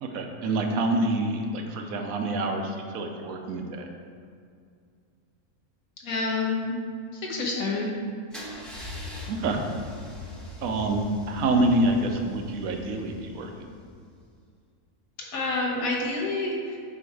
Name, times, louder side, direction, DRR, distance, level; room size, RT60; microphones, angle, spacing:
voice 1, 0.0-3.9 9.3-9.6 10.6-13.5, right 2 dB, 80° right, 3 dB, 1.1 m, -27 dB
voice 2, 6.0-6.8 7.1-7.9 15.3-16.8, left 3 dB, 80° left, -2 dB, 1.5 m, -28 dB
Car / Engine starting / Idling, 8.3-14.2, left 2 dB, ahead, 0.8 m, -41 dB
7.6 x 2.9 x 4.7 m, 2.2 s
omnidirectional pair, 1.5 m